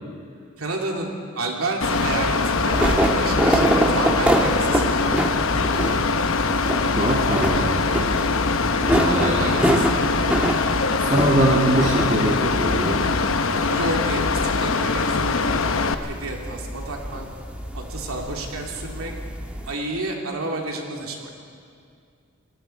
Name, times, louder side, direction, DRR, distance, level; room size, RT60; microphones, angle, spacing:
voice 1, 0.6-5.2 8.6-9.9 13.7-15.5 16.0-17.2 17.7-19.1 19.7-21.3, right 2 dB, 85° right, 0 dB, 3.0 m, -30 dB
Mechanical fan, 1.8-15.9, left 4 dB, 70° left, 0.9 m, -22 dB
sound 1, 1.9-19.7, right 1 dB, 5° right, 1.4 m, -26 dB
voice 2, 6.9-7.7 8.9-9.6 11.1-13.1, right 1 dB, 35° right, -3 dB, 2.1 m, -22 dB
29.5 x 19.5 x 4.6 m, 2.3 s
head